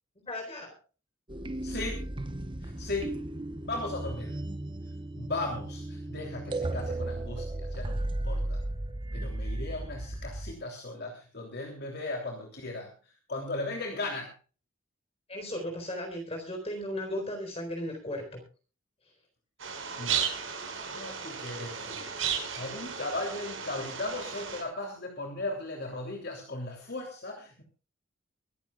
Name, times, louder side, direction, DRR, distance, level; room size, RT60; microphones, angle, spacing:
voice 1, 0.2-0.7 15.3-18.4, left 1 dB, 30° left, 3 dB, 4.1 m, -36 dB
sound 1, 1.3-10.5, right 1 dB, 25° right, 1.0 m, -35 dB
voice 2, 1.6-2.0 2.6-3.2 3.7-4.4 5.1-8.6 9.1-12.9 13.3-14.3 20.0-20.3 20.6-27.6, left 2 dB, 50° left, 1 dB, 3.1 m, -37 dB
sound 2, 19.6-24.6, right 7 dB, 75° right, 5.6 m, -34 dB
24.0 x 14.0 x 2.4 m, 0.36 s
head